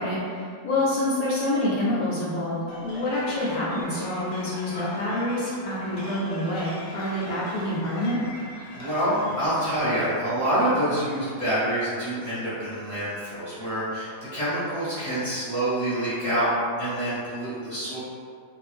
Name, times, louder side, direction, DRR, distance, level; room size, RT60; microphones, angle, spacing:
voice 1, 0.0-8.2, left 1 dB, 70° left, -7 dB, 1.0 m, -27 dB
sound 1, 2.7-9.5, left 1 dB, 85° left, 1.3 m, -41 dB
voice 2, 8.7-16.5 16.8-18.0, right 1 dB, 25° right, -13 dB, 0.8 m, -26 dB
2.6 x 2.4 x 3.3 m, 2.1 s
omnidirectional pair, 1.8 m